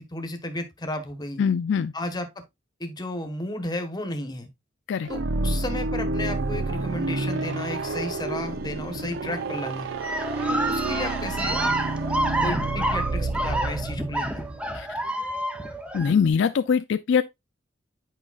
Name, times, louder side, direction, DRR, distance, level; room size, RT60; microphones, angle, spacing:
voice 1, 0.0-1.4 1.9-2.3 2.8-4.5 5.1-9.9 10.5-11.7 12.4-14.4, left 1 dB, 20° left, 1.1 m, -33 dB
voice 2, 1.4-1.9 4.9-5.1 14.7-14.9 15.9-17.2, left 6 dB, 65° left, 0.4 m, -22 dB
sound 1, 5.0-14.8, right 2 dB, 70° right, 0.7 m, -29 dB
sound 2, 5.4-12.2, right 6 dB, 50° right, 0.3 m, -40 dB
sound 3, 10.0-16.1, right 1 dB, 5° right, 0.7 m, -28 dB
8.5 x 5.0 x 2.4 m
head